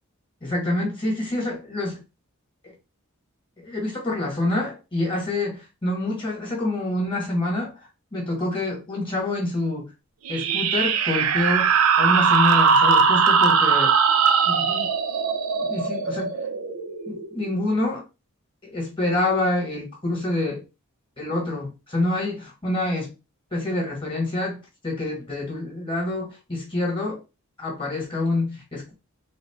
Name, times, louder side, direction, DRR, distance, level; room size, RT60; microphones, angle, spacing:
voice 1, 0.4-2.0 2.6-2.7 3.6-9.9 10.3-13.9 14.4-14.9 15.6-16.3 17.0-18.0 18.6-20.6 21.2-23.1 23.5-27.2 27.6-28.9, left 2 dB, 25° left, 1.5 m, -27 dB
sound 1, 10.2-17.5, right 6 dB, 85° right, 0.5 m, -20 dB
3.7 x 2.4 x 3.6 m
head